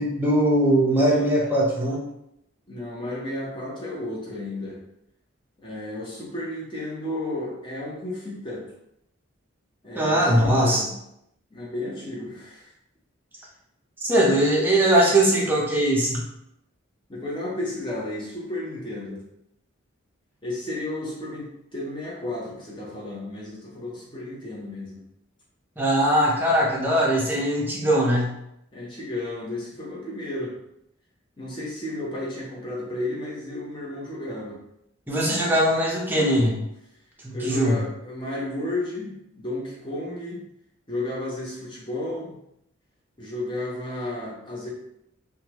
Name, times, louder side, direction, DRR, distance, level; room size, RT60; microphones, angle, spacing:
voice 1, 0.0-2.0 10.0-10.9 14.0-16.2 25.8-28.4 35.1-36.6 37.2-37.8, right 1 dB, 10° right, -4 dB, 0.6 m, -21 dB
voice 2, 2.7-4.8 5.6-8.6 9.8-10.8 11.5-12.7 14.2-14.4 17.1-19.2 20.4-25.0 28.7-30.5 31.4-34.6 35.2-35.5 37.3-40.4 40.9-42.4 43.2-44.7, left 1 dB, 25° left, -5 dB, 0.8 m, -33 dB
3.3 x 2.2 x 2.9 m, 0.79 s
head